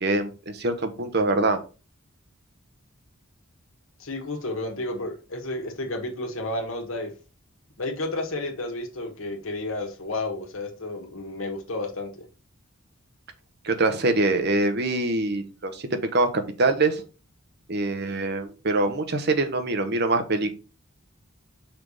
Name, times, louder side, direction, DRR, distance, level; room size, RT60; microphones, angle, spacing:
voice 1, 0.0-1.6 13.6-17.0 17.7-20.5, right 2 dB, 50° right, 1.0 m, -24 dB
voice 2, 4.0-7.1 7.8-12.2, left 2 dB, 70° left, 1.6 m, -31 dB
5.8 x 3.4 x 5.5 m
head